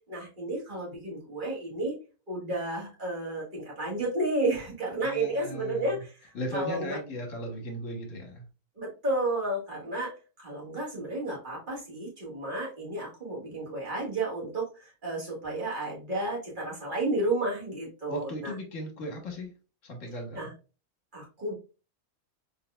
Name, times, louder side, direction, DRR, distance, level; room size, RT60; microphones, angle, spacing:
voice 1, 0.1-2.0 2.3-6.1 6.5-7.0 8.8-18.5 20.3-20.5 21.1-21.5, right 2 dB, 35° right, -4 dB, 1.7 m, -32 dB
voice 2, 5.0-6.0 6.3-8.4 18.1-19.5 19.8-20.5, equal, 60° left, 3 dB, 1.5 m, -37 dB
4.1 x 3.6 x 2.3 m, 0.33 s
omnidirectional pair, 1.5 m